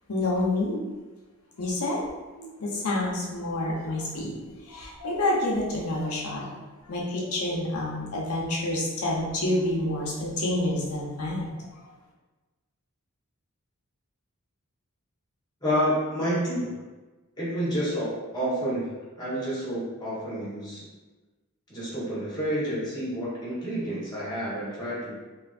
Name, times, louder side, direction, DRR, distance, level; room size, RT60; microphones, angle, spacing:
voice 1, 0.1-0.8 1.6-2.0 2.4-6.5 6.9-11.6, left 1 dB, 80° left, -4 dB, 0.7 m, -28 dB
voice 2, 15.6-16.8 17.4-20.8 21.7-25.2, equal, 20° left, -9 dB, 1.1 m, -29 dB
3.1 x 2.5 x 2.4 m, 1.2 s
head